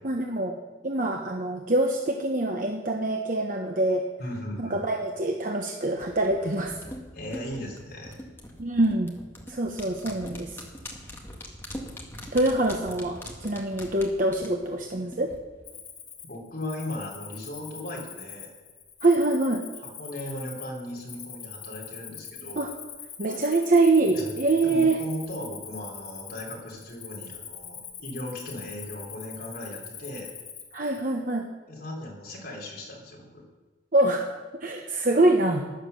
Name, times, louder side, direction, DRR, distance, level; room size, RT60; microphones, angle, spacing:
voice 1, 0.0-0.6 0.8-4.1 4.6-6.7 8.6-9.1 9.5-10.6 12.3-15.3 19.0-19.7 22.5-22.7 23.2-25.0 30.7-31.5 33.9-35.6, right 2 dB, 45° right, 2 dB, 1.0 m, -25 dB
voice 2, 4.2-4.8 7.1-8.1 16.2-18.5 19.8-22.6 24.1-24.3 24.6-30.3 31.7-33.4, left 1 dB, 55° left, -1 dB, 3.6 m, -37 dB
sound 1, 6.0-15.4 15.7-15.8, left 1 dB, 10° left, 1.9 m, -42 dB
Cricket, 15.6-31.0, left 8 dB, 35° left, 2.0 m, -43 dB
15.0 x 11.0 x 6.8 m, 1.3 s
head